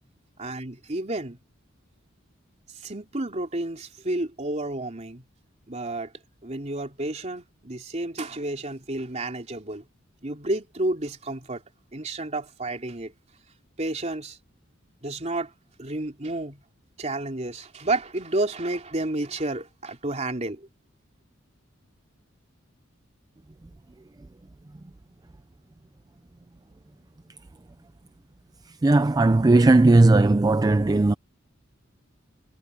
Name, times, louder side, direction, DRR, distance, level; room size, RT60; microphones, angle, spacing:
voice 1, 0.4-1.4 2.8-5.2 5.7-6.1 6.4-9.8 10.2-11.6 11.9-13.1 13.8-14.4 15.0-15.5 15.8-16.6 17.0-20.7, right 2 dB, 35° right, 3.2 m, -30 dB
voice 2, 28.7-31.1, right 2 dB, 20° right, 0.4 m, -17 dB
head